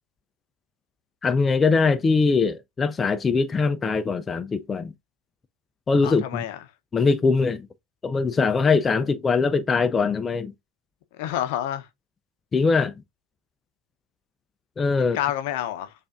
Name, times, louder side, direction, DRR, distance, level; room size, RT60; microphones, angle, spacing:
voice 1, 1.2-4.9 5.9-6.4 6.9-7.7 8.0-10.5 12.5-12.9 14.8-15.2, left 4 dB, 25° left, 0.4 m, -22 dB
voice 2, 6.0-6.6 11.2-11.9 15.1-15.9, left 12 dB, 65° left, 0.6 m, -28 dB
6.8 x 2.5 x 2.4 m
hypercardioid pair, 85°, 0 cm